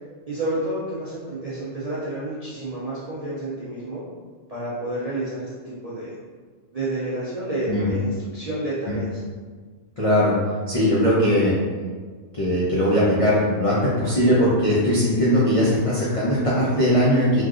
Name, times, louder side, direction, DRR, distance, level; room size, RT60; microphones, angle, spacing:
voice 1, 0.3-4.0 4.5-6.1 6.7-9.1, right 1 dB, 55° right, -9 dB, 0.4 m, -29 dB
voice 2, 10.0-10.3 10.7-11.6 12.3-17.4, equal, 60° left, -8 dB, 0.3 m, -20 dB
3.2 x 2.5 x 2.4 m, 1.5 s
omnidirectional pair, 1.3 m